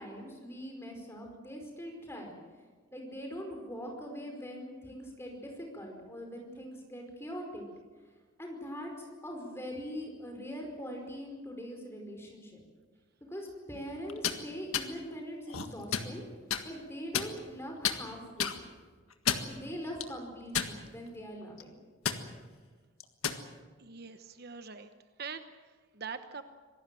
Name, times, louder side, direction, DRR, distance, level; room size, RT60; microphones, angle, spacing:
voice 1, 0.0-2.3 2.9-7.7 8.4-12.6 13.3-16.2 16.6-18.5 19.5-21.7, equal, 10° left, 2 dB, 5.0 m, -42 dB
sound 1, 14.1-14.4 14.7-14.9 15.5-16.1 16.5-16.6 17.1-17.6 17.8-18.0 18.4-18.6 19.1-19.5 20.0-20.1 20.5-21.1 21.4-21.6 22.1-22.2 23.0-23.4, left 8 dB, 80° left, 1.7 m, -31 dB
voice 2, 23.8-24.9 25.2-26.4, right 5 dB, 45° right, 9 dB, 1.0 m, -43 dB
26.0 x 18.5 x 7.7 m, 1.5 s
head